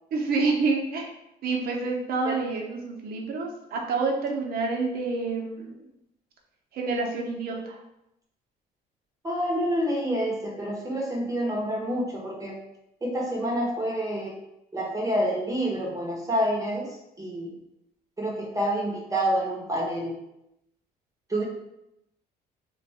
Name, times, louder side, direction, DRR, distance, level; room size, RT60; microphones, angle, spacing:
voice 1, 0.1-1.1 1.4-5.8 6.7-7.8, right 3 dB, 65° right, 0 dB, 0.7 m, -28 dB
voice 2, 9.2-12.6 13.0-14.3 14.7-17.5 18.2-20.2 21.3-21.4, equal, 20° right, -2 dB, 0.7 m, -28 dB
2.5 x 2.3 x 4.1 m, 0.84 s
cardioid pair, 110°, 17 cm